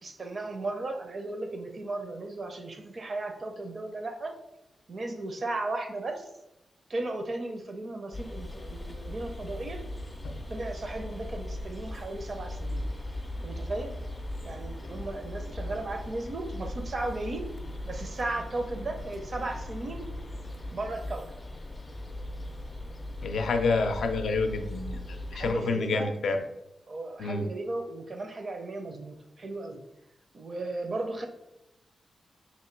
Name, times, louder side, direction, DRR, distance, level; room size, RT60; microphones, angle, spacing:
voice 1, 0.0-4.4 4.9-6.3 6.9-9.8 10.5-12.8 13.4-14.0 14.4-17.5 17.8-20.1 20.7-21.4 25.3-26.1 26.9-29.8 30.3-31.3, right 2 dB, 40° right, 5 dB, 0.5 m, -35 dB
sound 1, 8.1-25.5, left 1 dB, 15° left, 0.4 m, -38 dB
voice 2, 23.2-26.4 27.2-27.4, left 3 dB, 75° left, 6 dB, 0.4 m, -28 dB
2.9 x 2.9 x 4.4 m, 0.87 s
wide cardioid pair, 145°, 0 cm